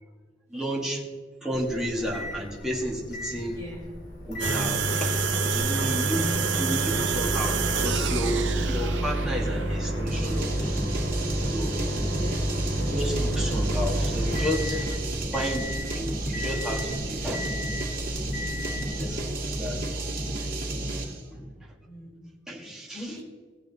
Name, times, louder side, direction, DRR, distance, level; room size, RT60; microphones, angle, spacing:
voice 1, 0.5-1.0 1.4-3.6 4.2-10.9 11.5-11.8 12.6-15.0 15.3-17.5 19.0-19.9 21.3-21.5 22.5-23.1, equal, 5° right, -3 dB, 2.0 m, -32 dB
Microwave oven, 1.5-19.5, equal, 60° left, 3.4 m, -31 dB
voice 2, 3.5-3.9 6.3-6.4 9.3-9.5 12.1-12.6 21.9-22.3 22.9-23.2, equal, 15° left, -4 dB, 3.0 m, -42 dB
sound 1, 4.4-10.2, right 7 dB, 90° right, 0.8 m, -29 dB
sound 2, 10.1-21.2, right 1 dB, 50° right, 2.0 m, -31 dB
18.0 x 7.4 x 4.2 m, 1.5 s
head